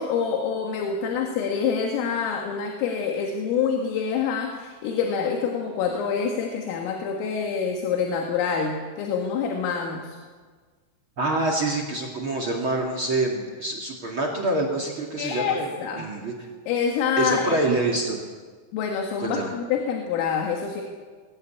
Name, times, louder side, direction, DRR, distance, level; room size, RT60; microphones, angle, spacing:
voice 1, 0.0-10.2 15.2-16.1 16.7-17.6 18.7-20.8, left 6 dB, 80° left, 2 dB, 4.2 m, -26 dB
voice 2, 11.2-15.7 16.0-16.5 17.2-18.2 19.2-19.5, right 2 dB, 50° right, 3 dB, 1.5 m, -26 dB
20.5 x 17.5 x 8.4 m, 1.5 s
omnidirectional pair, 5.9 m